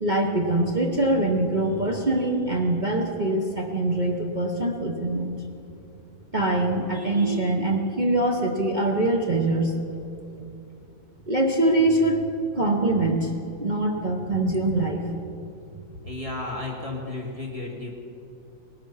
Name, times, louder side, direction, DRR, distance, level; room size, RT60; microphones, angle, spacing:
voice 1, 0.0-5.3 6.3-9.8 11.3-12.2 12.6-13.3 13.6-15.1, right 2 dB, 35° right, -1 dB, 0.8 m, -23 dB
voice 2, 16.0-18.0, left 2 dB, 15° right, -2 dB, 2.1 m, -33 dB
18.5 x 11.5 x 5.6 m, 2.7 s
omnidirectional pair, 2.1 m